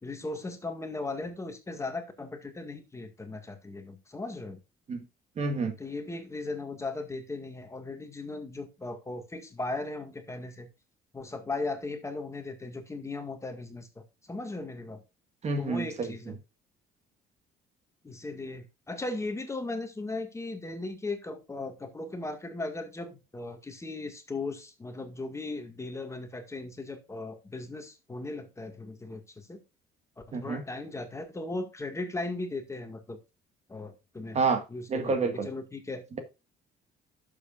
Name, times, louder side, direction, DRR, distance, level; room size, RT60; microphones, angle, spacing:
voice 1, 0.0-4.6 5.8-10.7 11.1-15.0 15.6-16.4 18.0-29.6 30.3-33.2 33.7-34.4 34.7-36.0, left 2 dB, 15° left, 1.9 m, -37 dB
voice 2, 5.4-5.7 15.4-16.1 30.3-30.6 34.3-34.6 34.9-35.5, right 4 dB, 40° right, 1.8 m, -28 dB
11.5 x 7.0 x 2.5 m
cardioid pair, 110°, 17 cm